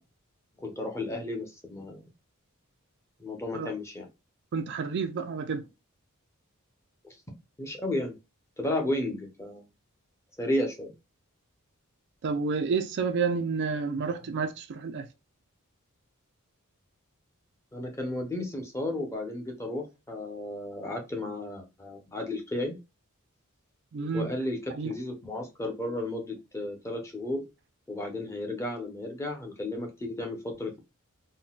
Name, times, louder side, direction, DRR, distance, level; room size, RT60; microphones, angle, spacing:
voice 1, 0.6-2.1 3.2-4.1 7.0-7.1 7.6-8.1 8.6-9.7 10.4-10.9 17.7-22.8 24.1-27.5 27.9-30.8, left 1 dB, 15° left, 0.7 m, -33 dB
voice 2, 4.5-5.7 12.2-15.1 23.9-24.3 24.7-24.9, right 5 dB, 55° right, 0.4 m, -30 dB
3.8 x 2.1 x 2.2 m
head